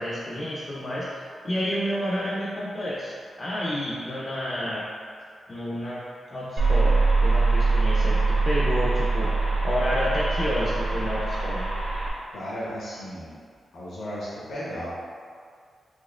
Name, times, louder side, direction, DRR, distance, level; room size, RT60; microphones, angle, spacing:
voice 1, 0.0-4.9 5.5-6.0 6.3-9.3 9.6-11.6, equal, 30° left, -7 dB, 0.4 m, -30 dB
sound 1, 6.6-12.1, right 3 dB, 60° right, 1.0 m, -23 dB
voice 2, 12.3-13.3 13.7-14.9, equal, 80° left, -8 dB, 0.9 m, -34 dB
4.2 x 3.0 x 2.3 m, 2.1 s
wide cardioid pair, 170°, 0 cm